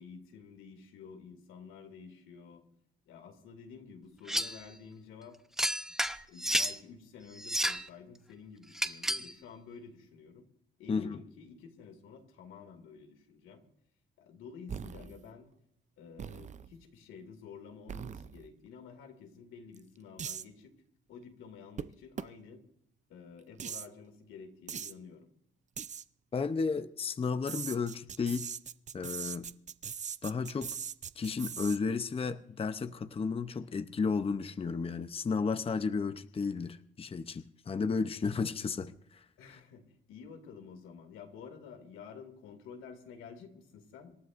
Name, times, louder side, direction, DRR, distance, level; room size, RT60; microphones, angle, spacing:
voice 1, 0.0-2.6 3.1-5.4 6.3-10.4 10.8-13.6 14.2-15.5 16.0-20.7 21.1-22.6 23.1-25.3 39.4-44.2, left 6 dB, 90° left, 5 dB, 2.5 m, -50 dB
sound 1, 4.3-4.6 5.6-6.8 7.4-7.9 8.7-9.3, equal, ahead, 0.8 m, -31 dB
sound 2, 14.7-15.3 16.2-16.8 17.9-18.5 19.7-19.8 20.2-20.5 21.8-21.9 22.2-22.3 23.6-23.9 24.7-24.9 25.8-26.0 27.5-31.8, right 7 dB, 35° right, 0.6 m, -40 dB
voice 2, 26.3-28.5 28.9-29.5 30.2-30.8 31.2-39.6, left 5 dB, 30° left, 10 dB, 0.7 m, -33 dB
27.0 x 12.5 x 2.6 m, 0.73 s
cardioid pair, 90°, 20 cm